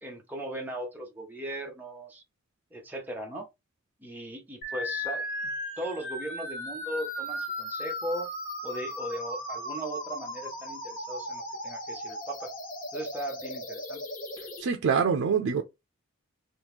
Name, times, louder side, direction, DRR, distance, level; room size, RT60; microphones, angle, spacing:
voice 1, 0.0-2.2 2.7-3.5 4.0-8.3 8.6-12.5 12.9-14.0, right 1 dB, 10° right, 0.8 m, -38 dB
sound 1, 4.6-14.6, left 1 dB, 40° left, 1.0 m, -36 dB
voice 2, 14.6-15.6, right 6 dB, 80° right, 0.4 m, -25 dB
2.9 x 2.3 x 3.5 m
head